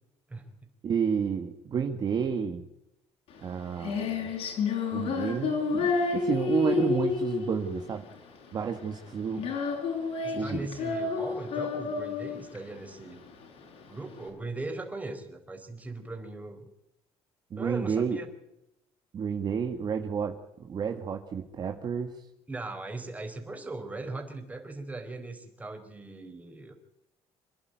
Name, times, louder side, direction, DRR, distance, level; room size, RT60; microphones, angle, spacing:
voice 1, 0.8-2.6 3.4-4.3 4.9-8.0 8.5-9.5 10.3-10.7 17.5-18.2 19.1-22.2, right 6 dB, 40° right, 5 dB, 1.8 m, -30 dB
Female singing, 3.3-14.3, left 5 dB, 65° left, 7.9 m, -30 dB
voice 2, 10.2-13.2 13.9-16.6 17.6-18.3 22.5-26.8, right 2 dB, 15° right, 5 dB, 4.3 m, -39 dB
27.5 x 11.5 x 9.4 m, 0.85 s
cardioid pair, 125°, 11 cm